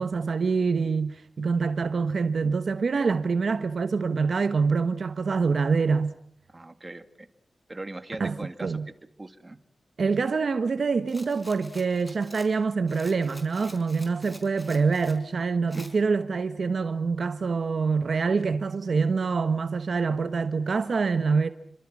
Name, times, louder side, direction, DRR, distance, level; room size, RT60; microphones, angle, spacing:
voice 1, 0.0-6.1 8.2-8.9 10.0-21.5, right 4 dB, 70° right, 1.1 m, -25 dB
voice 2, 6.5-7.3 7.7-8.9 9.2-9.6 15.7-15.8, right 2 dB, 25° right, 2.2 m, -40 dB
Rattle, 11.1-15.2 15.7-15.9, equal, 10° left, 5.2 m, -48 dB
28.0 x 25.5 x 6.2 m
wide cardioid pair, 90°, 0 cm